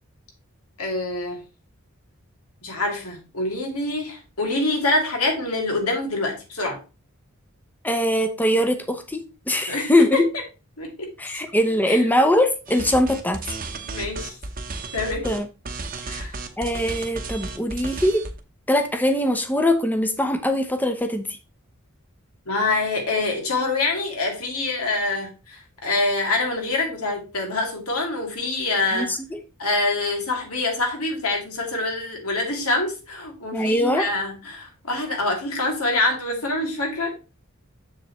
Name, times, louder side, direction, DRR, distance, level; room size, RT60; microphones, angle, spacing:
voice 1, 0.8-1.4 2.6-6.8 9.7-10.2 10.8-11.1 11.9-12.0 13.9-14.4 14.9-15.3 16.1-16.3 22.5-29.1 29.6-37.1, left 2 dB, 85° left, 2.7 m, -25 dB
voice 2, 7.8-9.2 9.5-10.3 11.2-13.6 15.2-15.5 16.6-18.2 18.7-21.4 28.9-29.4 33.5-34.0, left 1 dB, 10° left, 0.8 m, -21 dB
sound 1, 12.7-15.4 15.7-18.4, right 3 dB, 40° right, 1.0 m, -33 dB
7.2 x 7.1 x 3.1 m
head